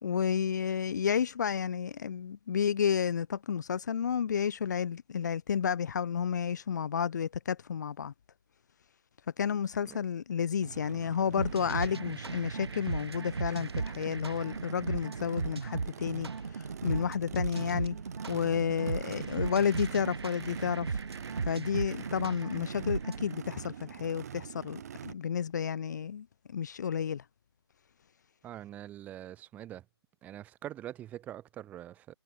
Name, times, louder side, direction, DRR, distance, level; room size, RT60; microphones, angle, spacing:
voice 1, 0.0-8.1 9.4-18.0 18.3-21.0 21.4-26.3 26.5-27.2, left 7 dB, 40° left, 1.1 m, -31 dB
Race car auto racing / Idling / Accelerating revving vroom, 10.6-25.1, right 9 dB, 35° right, 1.5 m, -45 dB
sound 1, 11.4-23.4, right 4 dB, 65° right, 0.7 m, -36 dB
voice 2, 28.4-29.8 30.2-32.1, right 12 dB, 10° right, 1.7 m, -44 dB
figure-of-eight pair, 145°, 14 cm